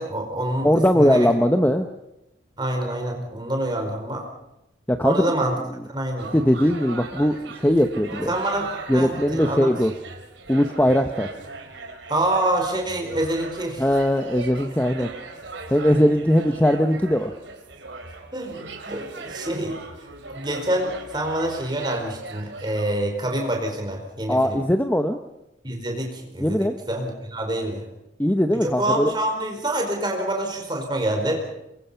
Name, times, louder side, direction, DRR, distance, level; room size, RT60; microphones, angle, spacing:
voice 1, 0.0-1.3 2.6-4.3 5.0-5.5 5.9-6.3 8.3-9.7 12.1-13.8 15.0-15.1 18.3-19.8 20.3-24.6 25.6-27.8 28.6-31.4, right 1 dB, 25° right, 2 dB, 4.6 m, -26 dB
voice 2, 0.6-1.9 4.9-5.2 6.3-7.4 7.6-8.3 8.9-9.9 10.5-11.3 13.8-15.1 15.7-17.3 24.3-25.2 26.4-26.8 28.2-29.1, equal, 10° left, 7 dB, 0.8 m, -20 dB
sound 1, 6.2-22.9, right 3 dB, 75° right, 3.2 m, -39 dB
26.5 x 22.5 x 5.7 m, 0.87 s
head